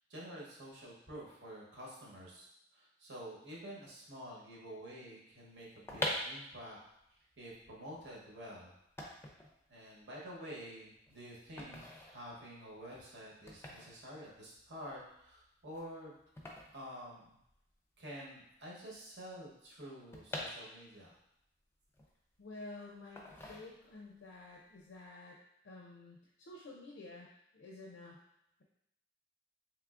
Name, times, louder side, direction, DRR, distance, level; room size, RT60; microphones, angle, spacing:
voice 1, 0.1-6.8 7.1-8.7 9.7-16.2 16.7-17.4 18.0-21.1, equal, 70° right, -4 dB, 1.0 m, -49 dB
sound 1, 5.6-17.8 18.0-18.1 18.3-21.2 21.6-22.6 23.2-24.2 24.5-24.8, left 1 dB, 15° left, 0.4 m, -45 dB
voice 2, 22.4-25.4 25.6-28.2, left 2 dB, 85° left, -2 dB, 0.5 m, -51 dB
3.5 x 3.1 x 2.4 m, 0.81 s
head